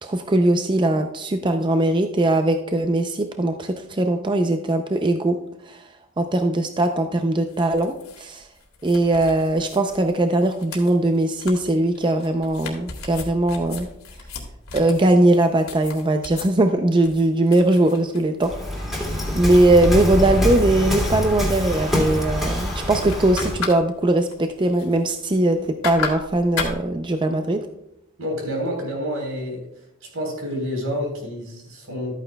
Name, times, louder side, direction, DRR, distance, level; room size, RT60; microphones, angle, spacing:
voice 1, 0.0-5.4 5.7-5.8 6.2-8.5 8.8-13.9 14.7-18.6 18.9-19.1 19.3-27.7, right 1 dB, 20° right, 6 dB, 0.5 m, -20 dB
sound 1, 7.5-16.5 17.0-18.5 19.1-21.9 22.2-22.6 22.9-23.7 24.1-25.5 25.8-26.7, left 3 dB, 85° left, 2.0 m, -33 dB
Waves surf, 18.4-23.7, left 1 dB, ahead, 2.5 m, -25 dB
voice 2, 28.2-29.6 30.1-32.2, equal, 80° right, 1 dB, 3.9 m, -28 dB
13.0 x 9.2 x 2.3 m, 0.83 s
head